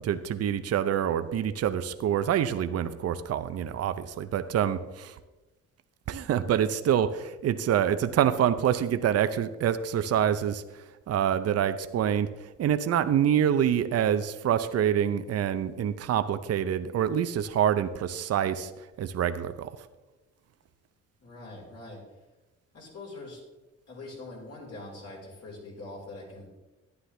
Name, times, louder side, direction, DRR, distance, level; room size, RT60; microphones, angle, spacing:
voice 1, 0.0-5.1 6.1-10.6 11.1-12.3 12.6-18.7 19.0-19.7, right 9 dB, 55° right, 11 dB, 0.6 m, -26 dB
voice 2, 21.2-22.0 22.7-23.4 23.9-26.5, left 2 dB, 55° left, -2 dB, 4.0 m, -43 dB
11.5 x 9.6 x 3.3 m, 1.1 s
cardioid pair, 90°, 30 cm